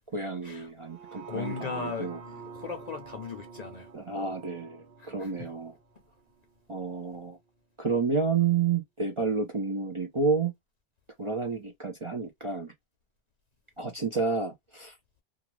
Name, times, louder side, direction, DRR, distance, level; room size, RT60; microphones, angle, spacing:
voice 1, 0.1-2.2 3.9-5.7 6.7-7.4 7.8-10.5 11.2-12.7 13.8-14.9, right 5 dB, 40° right, 0.5 m, -30 dB
sound 1, 0.8-7.0 7.4-7.5, right 6 dB, 60° right, 1.0 m, -47 dB
voice 2, 1.1-3.9 5.0-5.5, left 6 dB, 50° left, 0.5 m, -38 dB
2.4 x 2.3 x 3.0 m
omnidirectional pair, 1.1 m